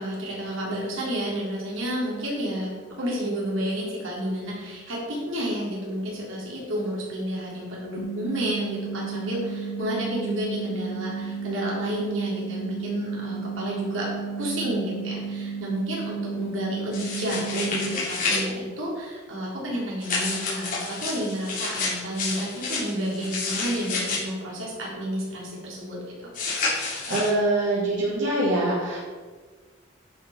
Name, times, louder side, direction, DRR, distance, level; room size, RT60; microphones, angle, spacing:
voice 1, 0.0-2.7 3.0-14.1 14.4-26.3, equal, 85° right, -4 dB, 3.7 m, -31 dB
sound 1, 8.0-18.0, right 5 dB, 70° left, 1.1 m, -33 dB
sound 2, 16.9-18.4 20.0-24.2 26.3-27.3, left 3 dB, 45° left, 3.6 m, -29 dB
voice 2, 26.5-29.0, right 1 dB, 70° right, -8 dB, 3.1 m, -25 dB
11.0 x 6.1 x 5.9 m, 1.5 s
head